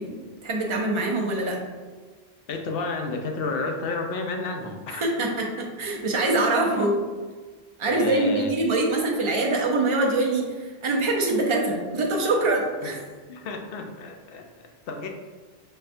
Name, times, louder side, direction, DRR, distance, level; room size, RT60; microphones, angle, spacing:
voice 1, 0.0-1.6 5.0-6.9 7.8-13.0, right 2 dB, 35° right, -2 dB, 0.6 m, -24 dB
voice 2, 2.5-5.4 6.7-6.9 7.9-8.7 12.8-12.9 13.3-14.5 14.9-15.1, left 3 dB, 70° left, 3 dB, 0.7 m, -31 dB
5.4 x 2.2 x 2.6 m, 1.4 s
omnidirectional pair, 1.1 m